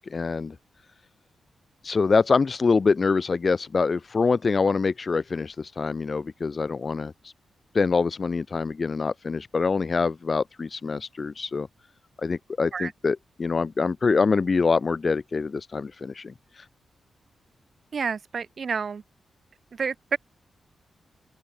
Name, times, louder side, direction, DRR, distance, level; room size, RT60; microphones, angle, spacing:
voice 1, 0.1-0.5 1.8-7.1 7.7-11.7 12.2-16.3, left 4 dB, 35° left, 1.4 m, -25 dB
voice 2, 17.9-19.0 19.7-20.2, right 5 dB, 45° right, 6.6 m, -29 dB
open air
wide cardioid pair, 145°, 0 cm